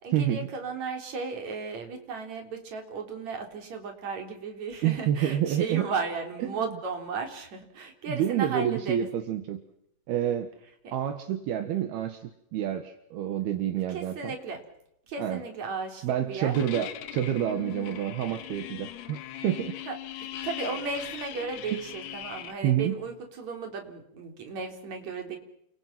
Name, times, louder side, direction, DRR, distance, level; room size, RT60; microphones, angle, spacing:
voice 1, 0.0-9.1 10.8-10.9 13.9-14.6 15.1-16.6 19.9-20.0 20.4-25.4, right 4 dB, 45° right, 4 dB, 4.9 m, -35 dB
voice 2, 4.8-5.9 6.5-6.7 8.1-9.6 10.1-10.5 10.9-14.3 15.2-15.4 16.0-19.8 22.6-22.9, right 10 dB, 75° right, 7 dB, 3.5 m, -28 dB
sound 1, 16.5-22.5, left 12 dB, 90° left, 3.5 m, -40 dB
30.0 x 26.5 x 6.1 m, 0.76 s
omnidirectional pair, 4.7 m